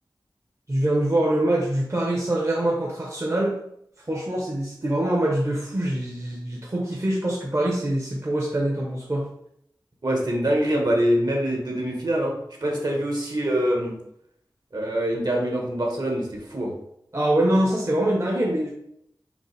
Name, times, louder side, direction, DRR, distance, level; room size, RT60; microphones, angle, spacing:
voice 1, 0.7-3.6 4.1-9.3 17.1-18.7, right 1 dB, 40° right, -3 dB, 1.0 m, -24 dB
voice 2, 10.0-14.0 14.7-16.7, equal, 60° right, -1 dB, 1.4 m, -24 dB
5.2 x 2.8 x 3.3 m, 0.73 s
cardioid pair, 40°, 8 cm